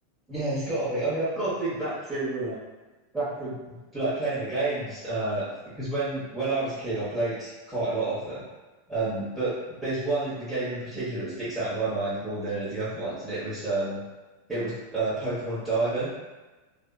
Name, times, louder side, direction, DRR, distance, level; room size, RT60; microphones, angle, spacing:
voice 1, 0.3-2.6 3.1-5.4 5.8-8.4 8.9-14.0 14.5-16.1, right 2 dB, 10° right, -13 dB, 1.1 m, -29 dB
2.7 x 2.3 x 2.3 m, 1.2 s
hypercardioid pair, 105°, 0 cm